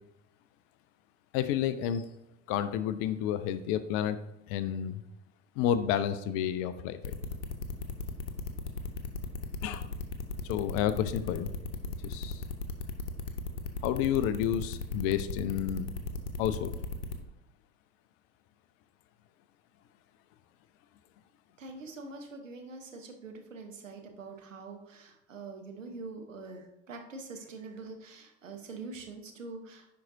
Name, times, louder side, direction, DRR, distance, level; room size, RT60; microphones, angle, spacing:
voice 1, 1.3-2.1 2.5-4.2 4.5-5.0 5.6-7.1 9.6-9.9 10.4-11.5 12.0-12.4 13.8-15.9 16.4-16.8, left 10 dB, 40° left, 13 dB, 0.5 m, -30 dB
sound 1, 7.0-17.2, left 4 dB, 70° left, 0.8 m, -36 dB
voice 2, 21.6-29.9, right 3 dB, 80° right, 4 dB, 1.1 m, -44 dB
10.5 x 4.5 x 2.6 m, 0.89 s
figure-of-eight pair, 75°, 38 cm